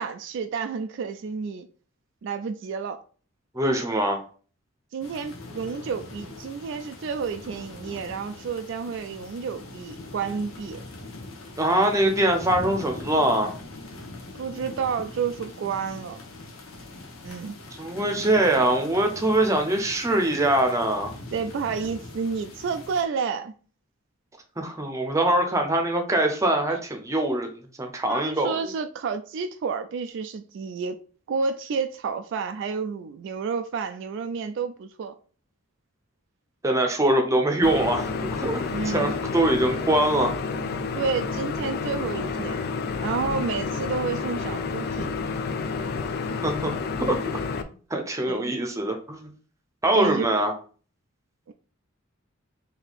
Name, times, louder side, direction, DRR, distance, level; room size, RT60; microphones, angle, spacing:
voice 1, 0.0-1.7 2.2-3.0 4.9-10.8 14.3-16.2 17.2-17.6 21.3-23.5 28.1-31.0 31.3-35.2 38.7-39.1 40.9-42.6 43.0-45.1 48.3-48.5 49.9-50.3 51.5-51.6, right 5 dB, 60° right, 0.3 m, -30 dB
voice 2, 3.5-4.2 11.6-13.5 17.8-21.1 24.6-27.5 27.8-28.6 36.6-40.3 46.4-46.7 47.0-47.2 47.9-49.3 49.8-50.5, right 1 dB, 15° right, 0.7 m, -23 dB
sound 1, 5.0-23.0, left 2 dB, 90° left, 1.0 m, -42 dB
sound 2, 37.6-47.6, left 4 dB, 50° left, 0.4 m, -30 dB
3.6 x 2.8 x 3.9 m
head